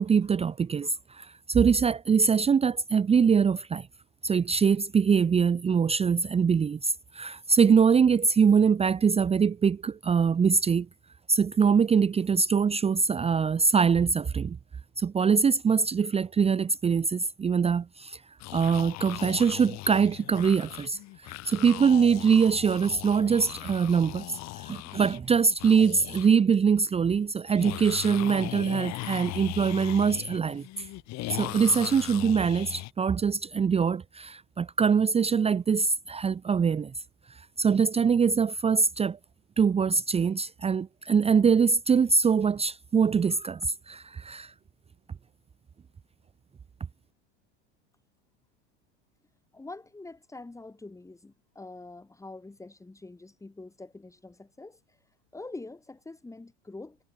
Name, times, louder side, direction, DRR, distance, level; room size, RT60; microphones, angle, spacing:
voice 1, 0.0-3.9 4.2-10.9 11.3-14.6 15.0-18.2 18.5-21.0 21.5-24.4 24.7-30.9 31.3-36.9 37.6-39.2 39.6-44.5, right 6 dB, 15° right, 0.9 m, -23 dB
sound 1, 18.4-26.3 26.5-26.6 27.5-32.9, left 19 dB, 50° left, 4.0 m, -38 dB
voice 2, 49.5-57.0, left 2 dB, 10° left, 4.5 m, -45 dB
supercardioid pair, 115°, 35 cm